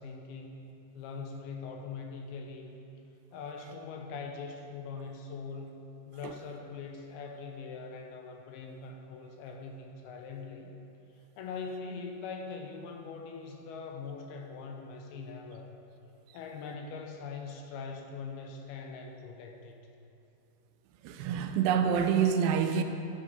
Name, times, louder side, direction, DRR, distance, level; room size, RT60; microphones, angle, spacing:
voice 1, 0.0-2.8 3.3-5.8 6.1-10.7 11.4-15.8 16.3-19.8, left 4 dB, 80° left, 2 dB, 2.5 m, -42 dB
voice 2, 21.0-22.8, right 7 dB, 85° right, 7 dB, 2.6 m, -27 dB
12.0 x 6.1 x 4.0 m, 2.6 s
omnidirectional pair, 4.7 m